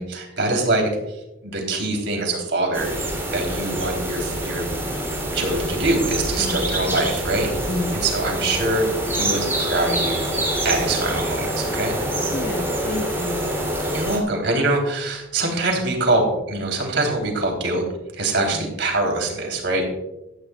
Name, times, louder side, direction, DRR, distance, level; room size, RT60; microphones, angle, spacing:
voice 1, 0.0-4.7 5.3-7.5 7.9-10.2 10.6-12.0 13.9-17.8 18.1-19.9, right 2 dB, 60° right, 2 dB, 3.6 m, -24 dB
sound 1, 2.7-14.2, right 1 dB, 10° right, 3.1 m, -26 dB
voice 2, 7.7-8.0 12.3-13.4 18.5-18.7, left 1 dB, 45° left, 5 dB, 1.3 m, -29 dB
17.0 x 13.5 x 2.4 m, 0.95 s
head